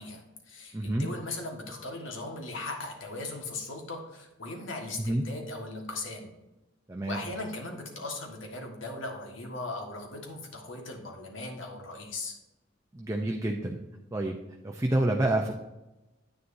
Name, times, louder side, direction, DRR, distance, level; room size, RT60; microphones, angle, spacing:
voice 1, 0.0-6.3 7.1-12.4, left 2 dB, 80° left, 2 dB, 1.6 m, -38 dB
voice 2, 0.7-1.1 5.0-5.3 6.9-7.2 12.9-13.8 14.1-14.4 14.6-15.5, right 1 dB, 15° right, 1 dB, 0.6 m, -28 dB
9.9 x 9.1 x 2.7 m, 1.0 s
head